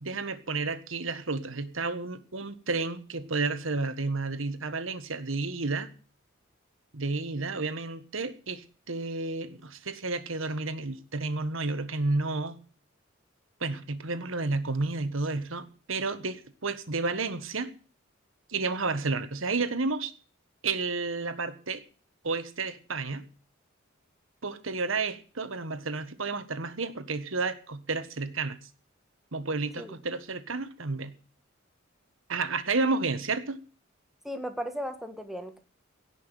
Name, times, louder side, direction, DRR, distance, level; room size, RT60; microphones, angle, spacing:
voice 1, 0.0-5.9 6.9-12.6 13.6-17.7 18.5-20.1 20.6-21.8 22.2-23.2 24.4-28.6 29.3-31.1 32.3-33.6, right 3 dB, 75° right, 12 dB, 1.5 m, -31 dB
voice 2, 34.2-35.6, equal, ahead, 7 dB, 1.7 m, -36 dB
17.0 x 6.1 x 9.2 m, 0.40 s
head